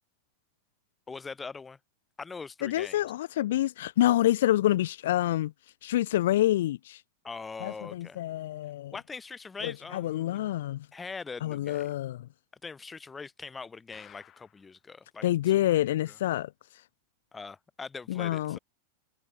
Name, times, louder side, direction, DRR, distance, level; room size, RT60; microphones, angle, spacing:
voice 1, 1.1-1.8 2.2-3.0 7.2-8.2 8.9-10.5 10.9-11.9 12.6-15.3 15.7-16.2 17.3-18.6, left 4 dB, 15° left, 0.9 m, -42 dB
voice 2, 2.6-5.5 5.8-7.0 7.6-8.9 9.6-10.9 11.4-12.3 15.2-16.5 18.1-18.6, left 14 dB, 55° left, 0.5 m, -27 dB
sound 1, 13.9-14.8 15.2-15.3 15.5-15.6 16.1-16.2, left 11 dB, 30° left, 3.8 m, -55 dB
figure-of-eight pair, 90°, 0 cm